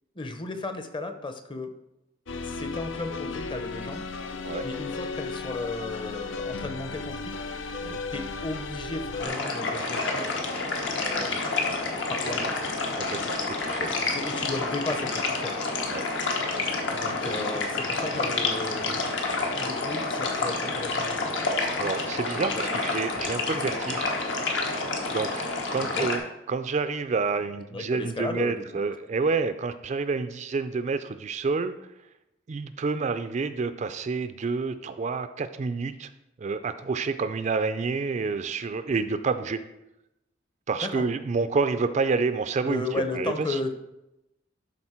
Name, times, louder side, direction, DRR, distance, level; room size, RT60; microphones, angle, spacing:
voice 1, 0.2-1.7 2.4-4.0 4.6-7.5 8.1-10.4 11.0-11.4 12.1-12.6 14.0-15.6 16.9-19.2 19.5-21.3 22.3-22.8 25.8-26.1 27.7-28.6 40.8-41.0 42.6-43.7, left 2 dB, 25° left, 7 dB, 0.7 m, -35 dB
sound 1, 2.3-9.3, left 4 dB, 90° left, 0.6 m, -35 dB
sound 2, 9.2-26.2, left 3 dB, 70° left, 1.3 m, -29 dB
voice 2, 13.0-13.9 15.9-16.0 17.2-17.4 21.8-24.1 25.1-26.2 26.5-31.8 32.5-36.1 36.4-39.6 40.7-42.8 43.2-43.6, right 4 dB, 40° right, 11 dB, 0.4 m, -28 dB
11.5 x 4.2 x 4.4 m, 0.89 s
head